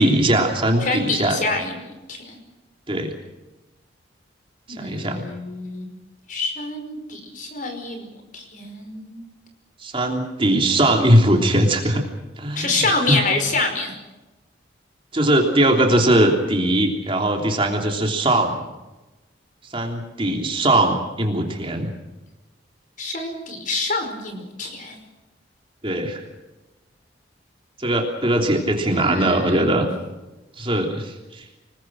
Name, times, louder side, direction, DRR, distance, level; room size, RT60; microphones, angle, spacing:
voice 1, 0.0-1.4 2.9-3.1 4.7-5.3 9.8-12.1 12.4-12.8 13.1-13.2 15.1-18.6 19.7-21.9 25.8-26.2 27.8-29.9 30.6-31.4, right 1 dB, 30° right, 2 dB, 3.2 m, -20 dB
voice 2, 0.8-1.8 2.1-2.4 4.7-5.9 6.3-9.2 12.5-13.9 23.0-25.0 28.9-29.9, left 2 dB, 45° left, 5 dB, 5.2 m, -27 dB
27.0 x 20.0 x 6.4 m, 1.1 s
head